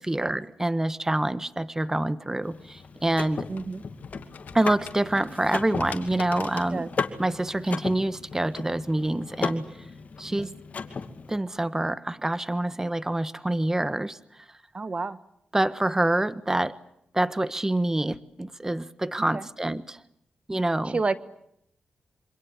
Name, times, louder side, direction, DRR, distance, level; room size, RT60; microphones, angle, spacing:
voice 1, 0.0-3.5 4.5-6.9 7.2-9.7 10.2-10.5 11.3-14.4 15.5-16.8 17.1-20.0 20.5-21.0, right 1 dB, 15° right, 14 dB, 1.2 m, -26 dB
Car / Mechanisms, 2.4-11.4, left 5 dB, 60° left, 2.4 m, -36 dB
sound 1, 2.6-8.0, left 6 dB, 75° left, 2.8 m, -44 dB
voice 2, 3.5-3.8 6.7-6.9 10.4-10.5 14.7-15.2 19.3-19.4 20.8-21.2, right 3 dB, 40° right, 13 dB, 1.2 m, -29 dB
27.0 x 26.0 x 8.2 m, 0.75 s
cardioid pair, 65°, 3 cm